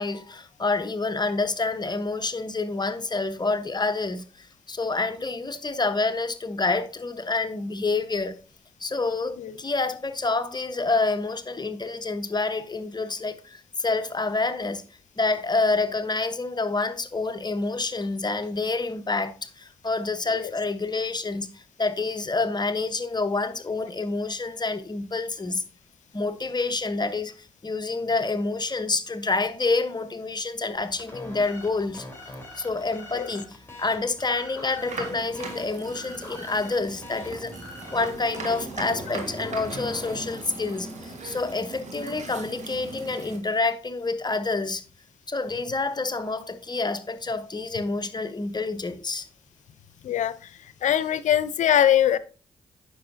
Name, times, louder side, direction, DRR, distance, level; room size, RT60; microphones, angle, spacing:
voice 1, 0.0-8.4 8.8-14.8 15.2-25.6 26.1-32.1 32.6-37.5 37.9-44.8 45.3-49.3, left 3 dB, 35° left, 1.1 m, -28 dB
sound 1, 30.7-41.3, left 1 dB, 20° left, 3.9 m, -43 dB
sound 2, 34.8-43.4, right 3 dB, 60° right, 1.9 m, -39 dB
voice 2, 50.0-50.3 50.8-52.2, left 10 dB, 70° left, 0.7 m, -21 dB
9.3 x 6.3 x 2.7 m
supercardioid pair, 45°, 13 cm